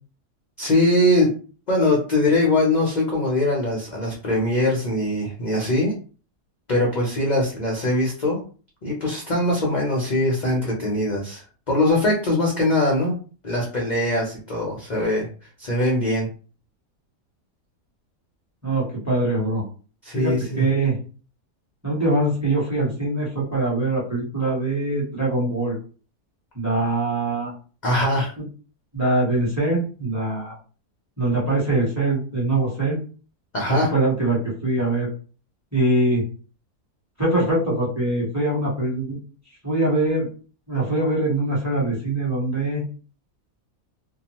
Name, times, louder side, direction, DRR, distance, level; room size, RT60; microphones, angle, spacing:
voice 1, 0.6-1.3 1.7-5.9 6.7-8.4 8.8-13.1 13.4-15.3 15.6-16.3 20.0-20.7 27.8-28.3 33.5-33.9, left 1 dB, 55° left, -2 dB, 0.5 m, -22 dB
voice 2, 18.6-19.6 20.1-21.0 21.8-25.7 26.5-27.5 28.9-30.5 31.2-33.0 33.9-35.1 35.7-36.2 37.2-39.2 39.6-40.3 40.7-42.8, right 2 dB, 10° right, -5 dB, 0.9 m, -23 dB
2.7 x 2.2 x 2.9 m, 0.38 s
omnidirectional pair, 1.7 m